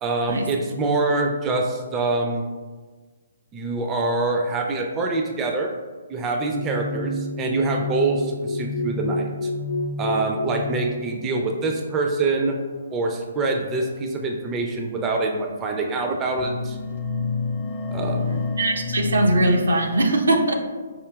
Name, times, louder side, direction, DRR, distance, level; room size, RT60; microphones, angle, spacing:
voice 1, 0.0-2.5 3.5-5.7 6.1-9.5 10.0-12.6 12.9-16.8 17.9-18.4, right 3 dB, 20° right, 2 dB, 0.3 m, -25 dB
sound 1, 6.5-11.7 12.5-12.8 13.9-14.0 14.7-14.8 15.5-15.9 16.2-19.5, left 2 dB, 45° left, 0.5 m, -29 dB
voice 2, 18.6-20.5, right 1 dB, 75° right, 3 dB, 0.5 m, -20 dB
4.8 x 2.7 x 2.3 m, 1.4 s
figure-of-eight pair, 135°, 0 cm